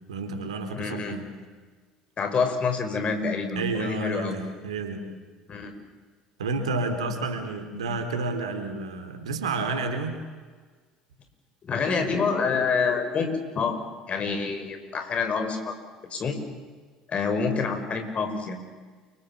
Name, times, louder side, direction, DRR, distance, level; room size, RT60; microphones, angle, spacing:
voice 1, 0.1-1.3 3.6-5.0 6.4-10.2, right 3 dB, 80° right, 6 dB, 3.8 m, -30 dB
voice 2, 0.7-1.2 2.2-4.4 5.5-5.7 11.6-13.8 14.1-15.7 16.0-16.4 17.1-18.6, left 5 dB, 40° left, 7 dB, 5.7 m, -27 dB
29.0 x 24.5 x 7.4 m, 1.4 s
hypercardioid pair, 65°, 3 cm